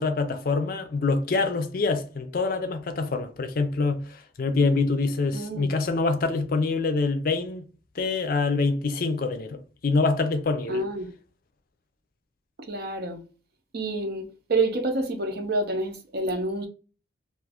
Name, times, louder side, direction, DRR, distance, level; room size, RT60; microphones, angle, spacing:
voice 1, 0.0-7.6 8.0-10.8, left 3 dB, 50° left, 0.4 m, -25 dB
voice 2, 5.3-5.7 10.7-11.1 12.6-13.2 13.7-16.7, right 2 dB, 55° right, 0.6 m, -28 dB
2.5 x 2.4 x 3.4 m
head